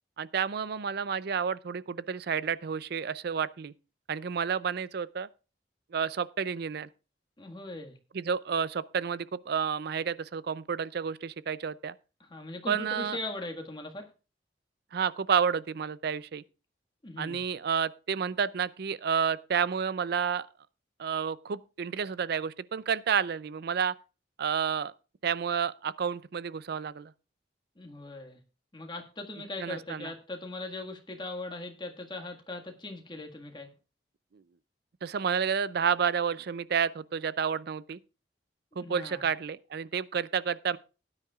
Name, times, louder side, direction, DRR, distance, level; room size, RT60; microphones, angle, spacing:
voice 1, 0.2-3.7 4.1-5.3 5.9-6.9 8.1-11.9 12.7-13.2 14.9-16.4 17.2-20.5 21.0-23.9 24.4-24.9 25.2-27.1 29.6-30.1 34.3-34.4 35.0-38.0 38.8-40.8, right 7 dB, 65° right, 0.5 m, -30 dB
voice 2, 7.4-8.0 12.2-14.1 17.0-17.4 27.7-28.4 28.7-33.7 38.8-39.3, left 2 dB, 25° left, 1.7 m, -40 dB
17.5 x 9.7 x 2.4 m
head